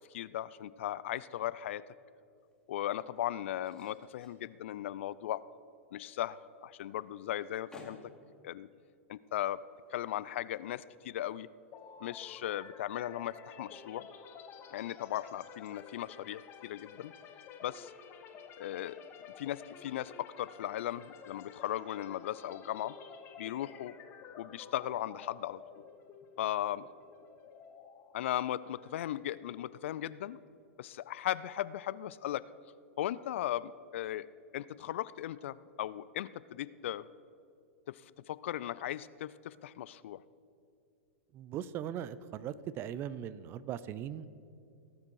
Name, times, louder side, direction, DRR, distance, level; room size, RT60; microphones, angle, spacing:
voice 1, 0.0-1.8 2.7-5.4 5.9-6.4 6.6-8.0 8.4-8.7 9.1-9.6 9.9-11.5 12.0-14.1 14.7-17.1 17.6-17.9 18.6-19.0 19.3-23.0 23.4-23.9 24.4-25.6 26.4-26.9 28.1-30.4 30.8-32.4 33.0-34.3 34.5-37.1 37.9-40.2, left 12 dB, 60° left, 18 dB, 0.3 m, -37 dB
sound 1, 2.1-11.2, left 2 dB, 5° left, 2.3 m, -61 dB
sound 2, 11.7-29.5, left 6 dB, 35° left, 1.2 m, -52 dB
voice 2, 41.3-44.3, right 10 dB, 35° right, 17 dB, 0.4 m, -39 dB
17.5 x 7.4 x 4.7 m, 2.4 s
hypercardioid pair, 105°, 7 cm